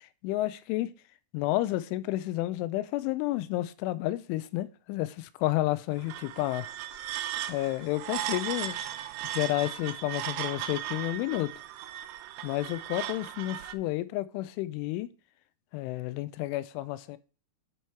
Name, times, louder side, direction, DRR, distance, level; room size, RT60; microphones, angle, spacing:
voice 1, 0.2-0.9 1.3-6.7 7.5-8.8 9.2-11.5 12.4-15.1 15.7-17.2, left 16 dB, 90° left, 3.0 m, -31 dB
sound 1, 5.9-13.8, right 12 dB, 90° right, 2.3 m, -37 dB
10.0 x 4.7 x 4.5 m
omnidirectional pair, 5.4 m